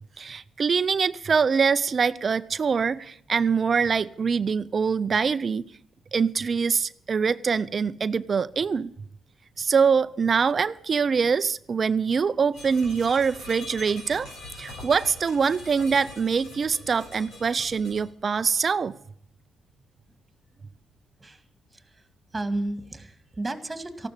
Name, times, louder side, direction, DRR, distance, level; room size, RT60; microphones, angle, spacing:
voice 1, 0.2-5.7 6.1-8.9 9.6-14.3 14.6-18.9, right 5 dB, 40° right, 0.5 m, -24 dB
sound 1, 12.5-18.0, left 2 dB, 85° left, 7.8 m, -43 dB
voice 2, 21.7-22.1 22.3-24.1, right 2 dB, 15° right, 2.0 m, -33 dB
15.0 x 12.0 x 7.4 m
cardioid pair, 90°, 0 cm